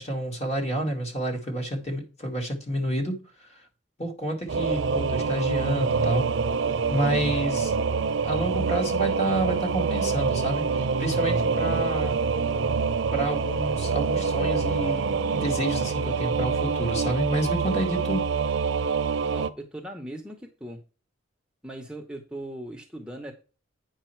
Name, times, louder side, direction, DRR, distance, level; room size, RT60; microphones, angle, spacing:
voice 1, 0.0-3.2 3.5-3.6 4.0-6.3 6.9-7.8 8.2-12.2 13.1-18.3, right 1 dB, 35° left, 2.2 m, -29 dB
Singing / Musical instrument, 4.5-19.5, right 5 dB, 90° right, 0.6 m, -26 dB
voice 2, 19.3-20.8 21.6-23.3, right 1 dB, 5° right, 0.9 m, -39 dB
8.9 x 5.5 x 4.4 m
head